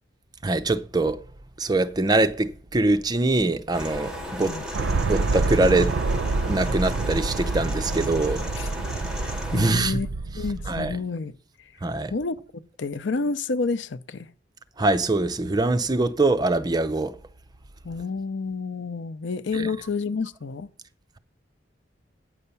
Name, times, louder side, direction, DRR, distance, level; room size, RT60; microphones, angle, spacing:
voice 1, 0.4-1.2 1.6-4.1 4.4-4.6 5.0-5.9 6.5-8.4 9.5-10.0 10.7-11.0 11.8-12.1 14.8-17.1 19.5-19.7, right 2 dB, 25° right, 0.6 m, -23 dB
sound 1, 3.7-9.7, equal, 5° right, 2.1 m, -35 dB
sound 2, 4.7-11.0, right 3 dB, 80° right, 0.5 m, -27 dB
voice 2, 9.1-10.1 10.3-11.3 12.1-12.4 12.8-14.3 17.8-20.7, left 4 dB, 90° left, 0.6 m, -29 dB
9.5 x 5.6 x 6.9 m
head